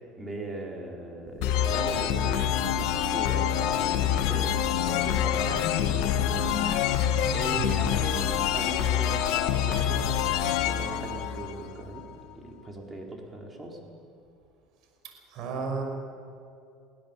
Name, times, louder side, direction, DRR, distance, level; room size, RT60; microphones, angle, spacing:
voice 1, 0.2-4.5 4.9-6.6 7.3-8.2 8.5-10.3 10.6-12.1 12.3-13.8, right 2 dB, 20° right, 0 dB, 4.4 m, -38 dB
sound 1, 1.4-12.0, left 10 dB, 70° left, 1.4 m, -26 dB
voice 2, 7.4-7.8 15.3-15.8, right 5 dB, 60° right, 3 dB, 5.6 m, -33 dB
22.5 x 17.0 x 7.3 m, 2.4 s
supercardioid pair, 105°, 0 cm